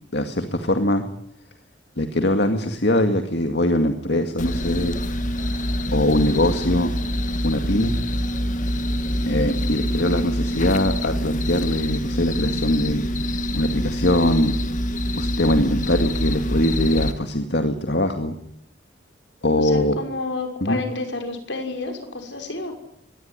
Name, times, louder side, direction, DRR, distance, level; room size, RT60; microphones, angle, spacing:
voice 1, 0.1-1.0 2.0-4.9 5.9-6.9 7.4-7.9 9.3-14.5 15.1-18.4 19.4-20.0 20.6-20.8, left 1 dB, 65° left, 6 dB, 2.2 m, -22 dB
sound 1, 4.4-17.1, equal, 45° left, 1.9 m, -25 dB
voice 2, 19.6-22.8, left 3 dB, 85° left, 5 dB, 6.2 m, -30 dB
24.0 x 19.5 x 10.0 m, 0.73 s
head